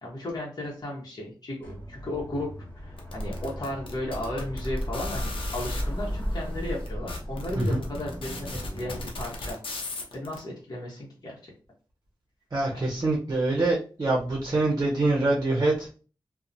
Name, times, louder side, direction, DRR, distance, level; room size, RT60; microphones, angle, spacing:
voice 1, 0.0-2.5 2.8-9.6 10.1-11.5, left 1 dB, 50° left, -4 dB, 0.9 m, -35 dB
sound 1, 1.6-9.0, equal, 20° left, 1.3 m, -35 dB
sound 2, 3.0-5.8 6.5-6.6 6.8-10.4, left 3 dB, 85° left, 0.6 m, -37 dB
voice 2, 12.5-15.9, right 2 dB, 40° right, -2 dB, 0.6 m, -25 dB
2.8 x 2.1 x 2.5 m, 0.37 s
cardioid pair, 65°, 9 cm